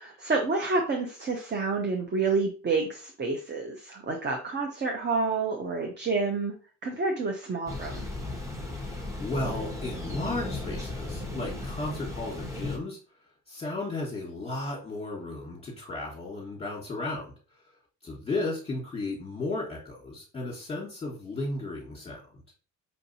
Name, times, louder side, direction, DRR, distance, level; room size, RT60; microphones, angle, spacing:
voice 1, 0.0-6.5 6.8-8.1, right 4 dB, 35° right, 3 dB, 0.8 m, -29 dB
Thunder, 7.7-12.8, left 2 dB, 10° right, 1.1 m, -35 dB
voice 2, 8.7-13.0 13.5-17.3 17.7-17.8 18.0-22.4, left 2 dB, 20° left, -3 dB, 1.4 m, -34 dB
5.7 x 2.6 x 2.7 m, 0.37 s
cardioid pair, 90°, 30 cm